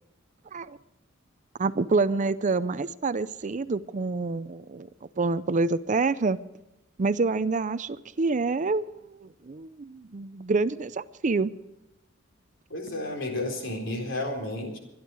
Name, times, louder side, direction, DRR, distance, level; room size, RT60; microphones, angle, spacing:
voice 1, 1.6-4.9 5.2-6.4 7.0-11.5, right 3 dB, 40° right, 15 dB, 0.5 m, -27 dB
voice 2, 12.7-14.8, left 1 dB, 65° left, 3 dB, 4.1 m, -32 dB
23.5 x 11.0 x 4.8 m, 0.92 s
head